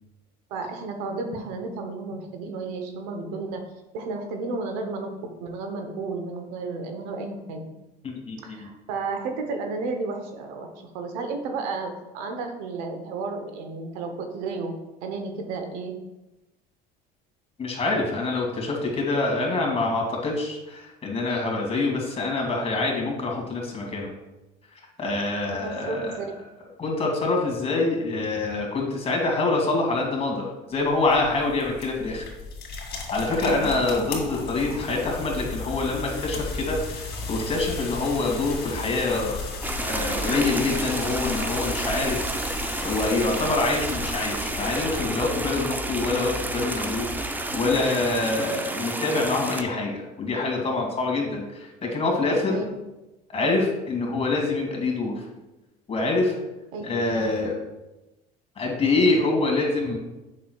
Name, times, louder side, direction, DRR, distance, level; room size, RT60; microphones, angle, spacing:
voice 1, 0.5-3.7 3.9-5.1 5.4-7.7 8.4-14.7 15.0-15.9 25.6-26.2 33.4-33.6 52.5-52.7 56.7-57.2, right 3 dB, 90° right, 5 dB, 1.0 m, -32 dB
voice 2, 8.0-8.7 17.6-24.1 25.0-26.2 26.8-30.4 30.7-32.2 33.1-39.4 39.8-42.2 42.8-52.6 53.3-55.2 55.9-56.3 56.8-57.6 58.6-60.0, left 3 dB, 30° left, 0 dB, 2.0 m, -25 dB
sound 1, 30.7-45.6, left 4 dB, 55° left, 2.3 m, -36 dB
sound 2, 33.8-49.2, equal, 10° left, 1.3 m, -38 dB
Babbling brook water sound, 39.6-49.6, right 2 dB, 10° right, 0.5 m, -31 dB
7.3 x 6.2 x 2.3 m, 1.0 s
supercardioid pair, 95°, 20 cm